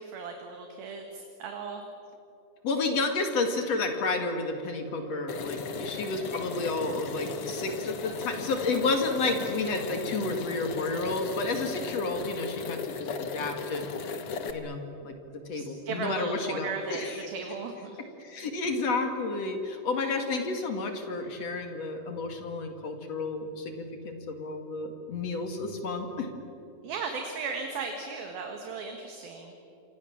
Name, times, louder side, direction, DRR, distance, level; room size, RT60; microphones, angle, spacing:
voice 1, 0.0-1.8 15.5-17.9 26.8-29.5, right 4 dB, 65° right, 4 dB, 3.3 m, -36 dB
voice 2, 2.6-13.8 14.5-17.3 18.2-26.3, left 3 dB, 45° left, 5 dB, 2.5 m, -31 dB
sound 1, 5.3-14.5, left 5 dB, 85° left, 1.2 m, -36 dB
28.0 x 26.0 x 7.3 m, 2.9 s
omnidirectional pair, 5.1 m